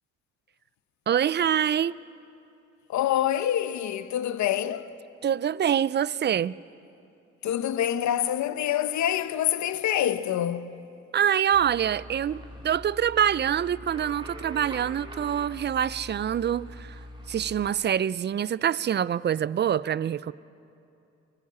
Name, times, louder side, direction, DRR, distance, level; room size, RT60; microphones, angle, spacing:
voice 1, 1.1-1.9 5.2-6.5 11.1-17.0 17.3-20.3, right 9 dB, 35° right, 0.4 m, -25 dB
voice 2, 2.9-4.9 7.4-10.8, left 11 dB, 70° left, 0.9 m, -26 dB
sound 1, 11.5-17.7, equal, 15° right, 2.7 m, -43 dB
23.0 x 16.0 x 8.6 m
cardioid pair, 90°, 30 cm